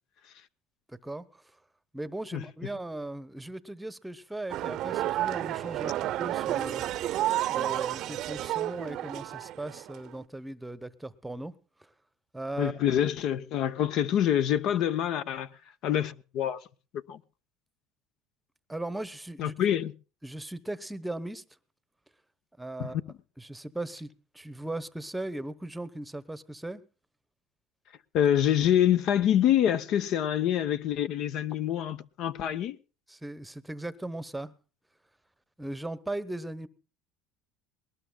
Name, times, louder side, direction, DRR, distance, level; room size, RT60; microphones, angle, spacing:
voice 1, 0.9-1.4 1.9-6.8 7.5-11.5 11.8-11.9 12.3-12.8 18.7-19.5 20.2-21.4 22.6-23.0 23.4-26.8 33.1-34.5 35.6-36.7, right 2 dB, 5° right, 1.0 m, -38 dB
sound 1, 4.5-10.2, right 14 dB, 55° right, 0.7 m, -31 dB
voice 2, 12.6-15.5 15.8-16.6 16.9-17.2 19.4-19.9 22.8-23.0 28.1-32.8, left 10 dB, 60° left, 0.8 m, -26 dB
20.5 x 19.0 x 2.3 m
supercardioid pair, 115°, 0 cm